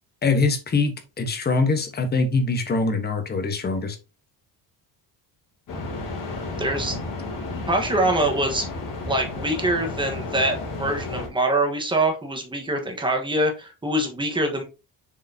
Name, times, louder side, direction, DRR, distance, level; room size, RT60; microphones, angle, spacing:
voice 1, 0.2-4.0, left 3 dB, 25° left, 1.2 m, -23 dB
sound 1, 5.7-11.3, left 2 dB, 50° left, 3.0 m, -32 dB
voice 2, 6.6-7.0 7.7-8.7 9.1-14.6, right 1 dB, 10° right, 1.4 m, -24 dB
7.0 x 4.8 x 2.8 m
cardioid pair, 160°, 41 cm